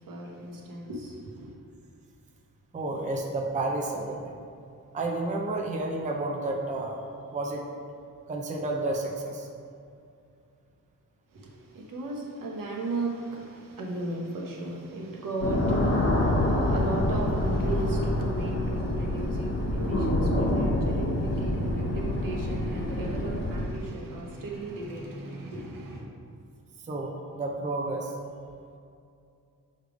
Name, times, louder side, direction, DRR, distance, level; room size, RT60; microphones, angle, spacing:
voice 1, 0.0-1.5 11.3-26.1, right 2 dB, 70° right, -1 dB, 1.1 m, -36 dB
voice 2, 2.7-4.3 4.9-7.0 7.3-7.6 8.3-9.5 26.8-28.1, right 2 dB, 20° right, 1 dB, 0.5 m, -31 dB
sound 1, 15.4-23.7, left 1 dB, 40° left, 0.8 m, -26 dB
6.5 x 3.4 x 5.0 m, 2.5 s
wide cardioid pair, 130°, 35 cm